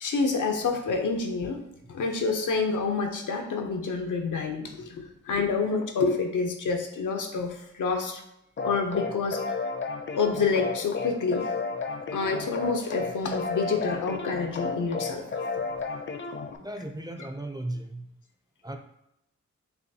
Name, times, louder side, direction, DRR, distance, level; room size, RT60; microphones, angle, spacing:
voice 1, 0.0-1.6 1.9-8.2 8.6-9.4 10.2-11.5 12.1-15.2, left 4 dB, 85° left, 4 dB, 0.7 m, -28 dB
sound 1, 8.6-16.6, left 4 dB, 40° left, 0.5 m, -33 dB
voice 2, 16.6-18.1 18.6-18.8, right 1 dB, 15° right, 5 dB, 0.4 m, -36 dB
6.8 x 2.3 x 2.7 m, 0.82 s
wide cardioid pair, 85°, 30 cm